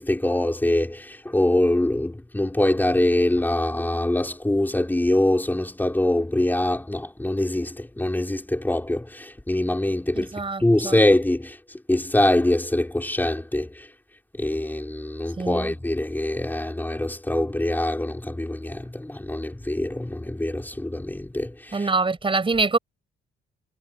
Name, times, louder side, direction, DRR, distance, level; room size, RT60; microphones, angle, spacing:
voice 1, 0.0-10.3 10.6-11.6 11.9-13.9 14.4-21.9, left 1 dB, 10° left, 4.9 m, -24 dB
voice 2, 10.2-11.0 15.4-15.7 21.7-22.8, right 3 dB, 25° right, 6.9 m, -25 dB
cardioid pair, 90°, 20 cm